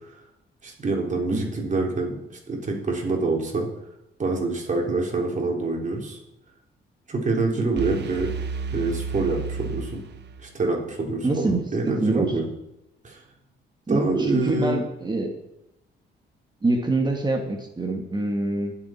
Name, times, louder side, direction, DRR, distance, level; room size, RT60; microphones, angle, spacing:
voice 1, 0.6-2.2 2.5-3.7 4.2-6.2 7.1-8.3 8.7-10.0 10.4-12.4 13.0-13.2 13.9-14.8, right 3 dB, 40° right, -1 dB, 3.8 m, -26 dB
sound 1, 7.8-10.7, right 5 dB, 60° right, 1.3 m, -32 dB
voice 2, 11.2-12.3 13.9-15.3 16.6-18.8, right 2 dB, 20° right, 2 dB, 2.1 m, -25 dB
23.0 x 7.8 x 4.5 m, 0.88 s
cardioid pair, 90°, 20 cm